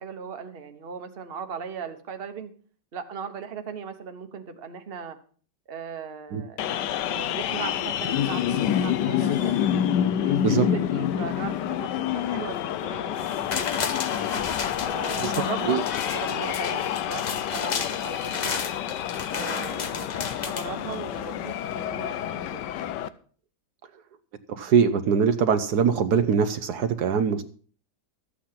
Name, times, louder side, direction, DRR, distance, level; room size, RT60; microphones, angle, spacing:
voice 1, 0.0-2.5 2.9-5.2 5.7-9.6 10.2-13.3 13.6-13.9 14.8-18.6 19.3-22.6, right 6 dB, 40° right, 8 dB, 1.2 m, -38 dB
sound 1, 6.6-23.1, left 10 dB, 80° left, 1.3 m, -28 dB
sound 2, 13.2-21.3 21.7-21.8, left 5 dB, 50° left, 0.5 m, -34 dB
voice 2, 24.5-27.4, right 6 dB, 70° right, 10 dB, 1.3 m, -22 dB
13.5 x 8.6 x 5.7 m, 0.43 s
omnidirectional pair, 1.8 m